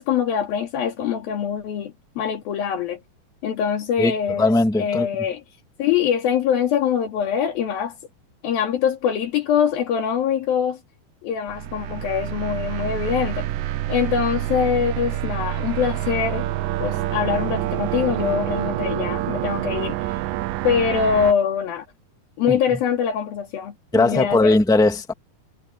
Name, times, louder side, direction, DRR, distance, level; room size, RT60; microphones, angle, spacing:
voice 1, 0.0-3.0 3.4-4.5 4.8-5.4 5.8-8.0 8.4-10.8 11.2-13.5 13.9-16.5 16.8-20.0 20.6-21.9 22.4-24.6, left 8 dB, 80° left, 4.1 m, -23 dB
voice 2, 4.4-5.1 22.5-22.8 23.9-25.1, left 2 dB, 5° left, 0.6 m, -19 dB
sound 1, 11.5-21.3, right 15 dB, 80° right, 2.2 m, -27 dB
omnidirectional pair, 4.2 m